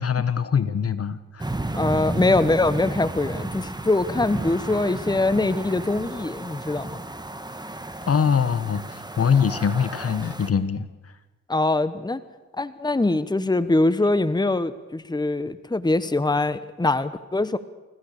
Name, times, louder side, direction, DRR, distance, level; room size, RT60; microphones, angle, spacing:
voice 1, 0.0-1.5 8.1-10.9, left 6 dB, 50° left, 14 dB, 1.3 m, -23 dB
sound 1, 1.4-10.5, right 2 dB, 15° right, 2.0 m, -32 dB
voice 2, 1.7-7.0 11.5-12.2 12.5-17.6, left 2 dB, 15° left, 14 dB, 1.2 m, -23 dB
28.0 x 15.5 x 6.7 m, 1.2 s
supercardioid pair, 45°, 30 cm